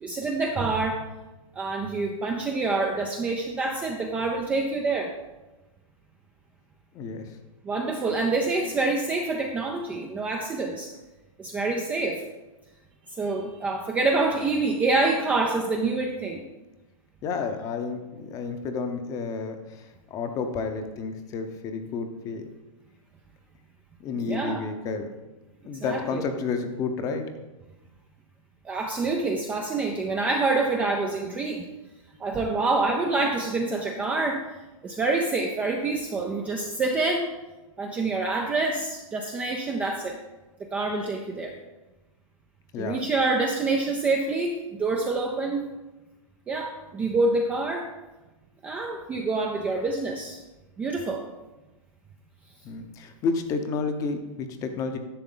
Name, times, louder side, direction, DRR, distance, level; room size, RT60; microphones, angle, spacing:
voice 1, 0.0-1.0 1.6-5.1 7.6-10.9 11.4-12.2 13.1-16.4 24.2-24.7 25.8-26.2 28.6-31.7 32.2-34.4 34.8-37.3 37.8-40.2 40.7-41.5 42.8-45.7 46.5-47.9 48.6-50.4 50.8-51.2, right 3 dB, 10° right, 2 dB, 0.4 m, -26 dB
voice 2, 17.2-19.6 20.1-22.4 24.0-25.1 25.6-27.2 42.7-43.0 52.6-55.0, left 4 dB, 20° left, 7 dB, 0.7 m, -30 dB
11.0 x 6.9 x 3.8 m, 1.1 s
hypercardioid pair, 155°, 18 cm